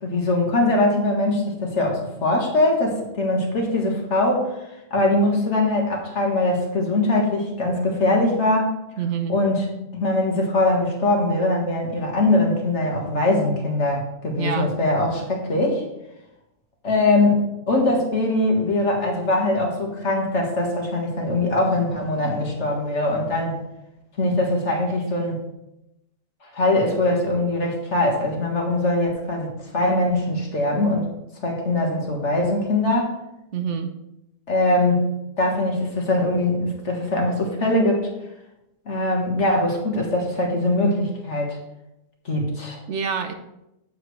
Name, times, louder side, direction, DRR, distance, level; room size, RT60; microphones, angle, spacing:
voice 1, 0.0-4.6 4.9-8.8 9.3-9.7 9.9-15.8 16.8-23.6 24.2-25.4 26.5-31.1 31.4-33.2 34.5-35.0 35.4-38.1 38.9-41.6 42.3-42.8, left 2 dB, 55° left, 0 dB, 1.9 m, -22 dB
voice 2, 9.0-9.3 14.4-14.7 33.5-33.9 42.9-43.3, right 7 dB, 65° right, 7 dB, 1.0 m, -26 dB
9.0 x 7.5 x 3.2 m, 0.88 s
omnidirectional pair, 1.4 m